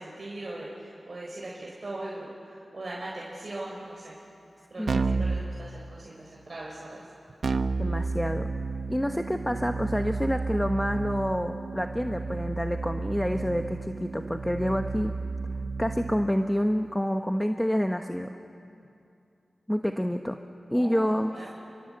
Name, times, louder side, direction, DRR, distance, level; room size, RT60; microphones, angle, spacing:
voice 1, 0.0-4.1 4.7-7.0 20.7-21.5, right 2 dB, 55° right, -4 dB, 4.8 m, -40 dB
Keyboard (musical), 4.9-5.4 7.4-16.3, right 4 dB, 75° right, 1.0 m, -31 dB
voice 2, 7.8-8.5 8.9-15.1 15.8-18.3 19.7-20.4 20.7-21.3, equal, 5° left, 5 dB, 1.1 m, -28 dB
29.5 x 23.0 x 7.9 m, 2.6 s
cardioid pair, 60°, 0 cm